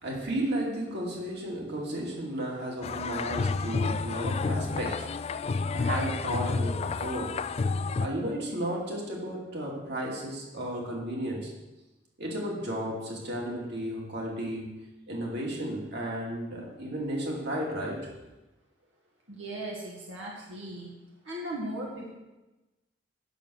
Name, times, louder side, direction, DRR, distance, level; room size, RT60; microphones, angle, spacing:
voice 1, 0.0-5.1 5.7-7.3 8.0-11.5 12.2-14.7 15.1-18.1, right 1 dB, 65° right, -2 dB, 2.6 m, -33 dB
sound 1, 2.8-8.1, left 4 dB, 35° left, 0.3 m, -30 dB
voice 2, 19.3-20.9 21.2-22.1, right 1 dB, 90° right, -3 dB, 1.9 m, -37 dB
9.0 x 6.7 x 6.4 m, 1.1 s
head